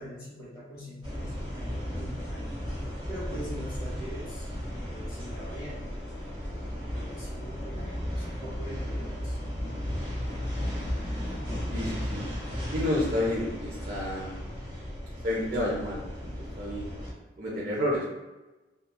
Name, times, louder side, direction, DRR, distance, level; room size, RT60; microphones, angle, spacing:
voice 1, 0.0-2.4 3.1-4.5 4.8-5.8 6.8-9.4, equal, 20° left, -9 dB, 0.8 m, -43 dB
sound 1, 1.0-17.1, equal, 30° right, 1.2 m, -35 dB
voice 2, 11.7-12.3 12.7-14.3 15.2-17.0 17.4-18.1, left 1 dB, 50° right, -5 dB, 0.5 m, -30 dB
2.8 x 2.3 x 2.2 m, 1.1 s
head